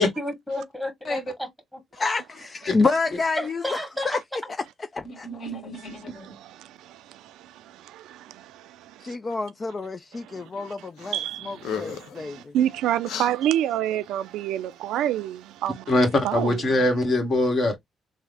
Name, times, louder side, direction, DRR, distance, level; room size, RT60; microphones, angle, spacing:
voice 1, 0.0-1.8 3.4-4.5, left 1 dB, 5° left, 1.4 m, -33 dB
voice 2, 1.9-4.2 4.9-5.3 9.0-11.2 11.4-12.5, left 3 dB, 30° left, 0.4 m, -28 dB
voice 3, 5.0-6.2 15.9-17.8, left 2 dB, 50° left, 1.6 m, -23 dB
voice 4, 5.8-9.2 10.1-16.0 16.2-16.6, right 11 dB, 90° right, 0.4 m, -29 dB
sound 1, 11.0-11.3 11.6-12.2 13.0-13.3, left 7 dB, 85° left, 0.6 m, -33 dB
3.5 x 2.1 x 3.3 m
cardioid pair, 90°, 0 cm